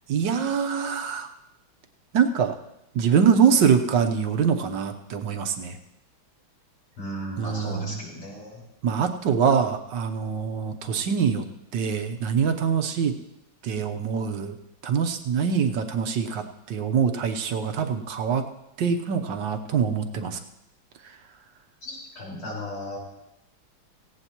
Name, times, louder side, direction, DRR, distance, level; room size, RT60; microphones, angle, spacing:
voice 1, 0.1-1.3 2.1-2.5 2.9-5.8 7.4-8.0 8.8-11.5 11.7-13.1 13.6-14.5 14.8-18.4 18.8-20.4, right 7 dB, 65° right, 6 dB, 1.5 m, -24 dB
voice 2, 7.0-8.6 21.8-23.0, left 1 dB, 75° left, -4 dB, 5.8 m, -35 dB
18.0 x 16.0 x 3.0 m, 0.85 s
omnidirectional pair, 2.3 m